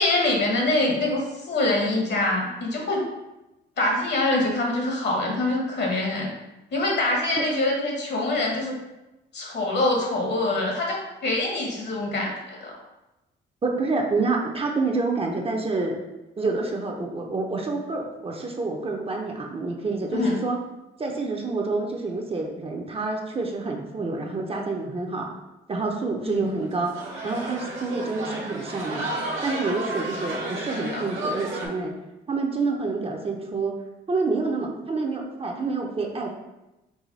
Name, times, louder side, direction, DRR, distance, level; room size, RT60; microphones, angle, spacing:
voice 1, 0.0-3.0 3.8-6.3 6.7-8.8 9.3-12.7 20.1-20.4 26.2-26.4 30.8-31.1, left 2 dB, 60° left, -1 dB, 1.3 m, -25 dB
voice 2, 13.6-16.0 16.4-20.6 21.0-25.3 25.7-26.9 27.2-29.1 29.4-31.9 32.3-33.7 34.1-36.3, right 3 dB, 30° right, 1 dB, 0.6 m, -28 dB
sound 1, 26.4-31.7, right 2 dB, 85° right, 1.2 m, -32 dB
4.8 x 2.2 x 4.0 m, 0.98 s
cardioid pair, 90°, 20 cm